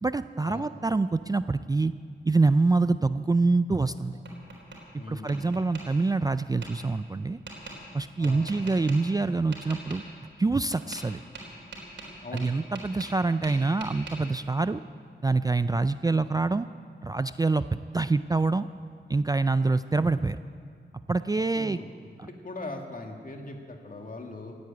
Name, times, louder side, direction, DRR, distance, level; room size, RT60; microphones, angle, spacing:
voice 1, 0.0-1.9 2.3-4.1 5.1-7.4 7.9-10.0 10.4-11.2 12.3-14.8 15.2-16.7 17.0-18.7 19.1-20.4 21.1-21.8 22.2-22.3, right 3 dB, 20° right, 12 dB, 0.3 m, -25 dB
Tap, 3.8-4.8 5.3-5.8 6.6-6.7 7.5-7.8 8.2-9.0 9.5-10.0 10.7-11.1 11.3-13.2 13.4-14.2, right 3 dB, 80° right, 4.0 m, -42 dB
voice 2, 4.9-5.6 8.2-8.6 12.2-12.5 21.6-21.9 22.2-24.5, left 2 dB, 50° left, 3 dB, 2.0 m, -40 dB
16.5 x 9.5 x 8.8 m, 2.2 s
wide cardioid pair, 75°, 19 cm